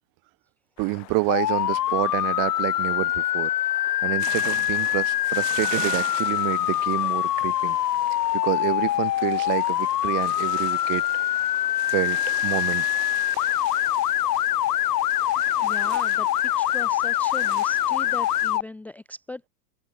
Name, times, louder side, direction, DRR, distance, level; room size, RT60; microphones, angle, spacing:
sound 1, 0.8-18.5, left 40 dB or more, 50° left, 7.0 m, -47 dB
voice 1, 0.8-3.5 4.0-7.8 8.3-11.0 11.9-12.9, right 28 dB, 45° right, 3.8 m, -28 dB
Motor vehicle (road) / Siren, 1.3-18.6, left 13 dB, 90° left, 1.7 m, -24 dB
sound 2, 4.2-18.6, right 13 dB, 90° right, 2.5 m, -41 dB
voice 2, 15.6-16.3 16.6-19.5, left 2 dB, 5° left, 0.7 m, -38 dB
open air
supercardioid pair, 145°, 46 cm